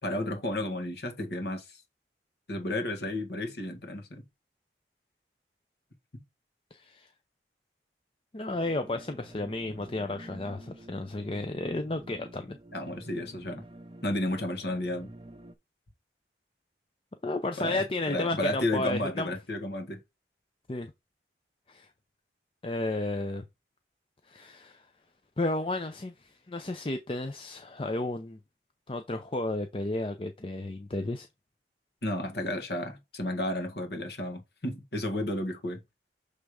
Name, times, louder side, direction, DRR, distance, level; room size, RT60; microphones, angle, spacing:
voice 1, 0.0-1.8 2.5-4.2 6.1-6.2 12.7-13.6 14.0-15.1 17.6-20.0 32.0-35.8, left 1 dB, 75° left, 1.8 m, -32 dB
voice 2, 6.7-7.1 8.3-12.6 17.2-19.3 20.7-20.9 21.7-21.9 22.6-23.5 24.3-24.9 25.4-28.4 28.9-31.3, left 2 dB, 30° left, 0.5 m, -33 dB
sound 1, 8.5-15.6, right 1 dB, 30° right, 0.6 m, -49 dB
6.6 x 3.4 x 4.9 m
head